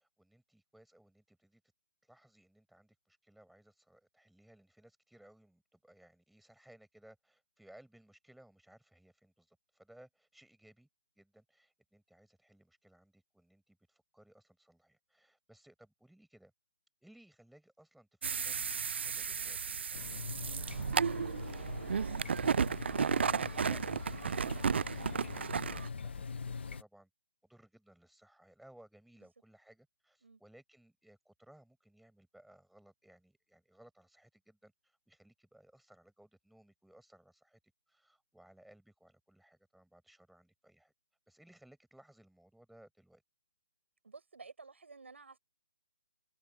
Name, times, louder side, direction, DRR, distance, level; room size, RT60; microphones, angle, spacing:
voice 1, 0.0-1.6 2.1-10.9 11.2-16.5 17.0-18.1 18.4-27.1 27.4-37.6 37.9-40.9 41.3-43.2, right 1 dB, ahead, 5.3 m, -62 dB
sound 1, 18.2-25.9, right 6 dB, 65° right, 0.4 m, -34 dB
sound 2, 19.9-26.8, left 5 dB, 65° left, 1.7 m, -43 dB
voice 2, 44.0-45.4, right 4 dB, 85° right, 7.1 m, -52 dB
hypercardioid pair, 160°, 6 cm